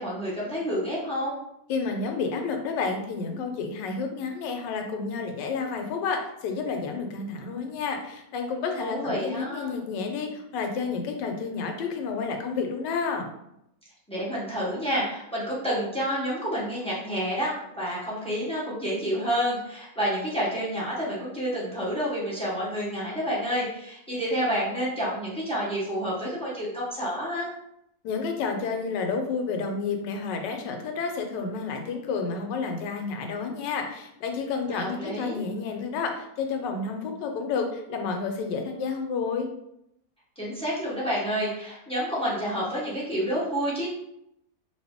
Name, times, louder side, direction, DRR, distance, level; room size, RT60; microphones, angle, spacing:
voice 1, 0.0-1.3 8.8-9.7 14.1-27.5 34.7-35.4 40.4-43.9, equal, 10° left, -7 dB, 0.4 m, -29 dB
voice 2, 1.7-13.3 28.0-39.5, left 4 dB, 85° left, 4 dB, 1.3 m, -30 dB
2.8 x 2.6 x 3.5 m, 0.79 s
omnidirectional pair, 1.9 m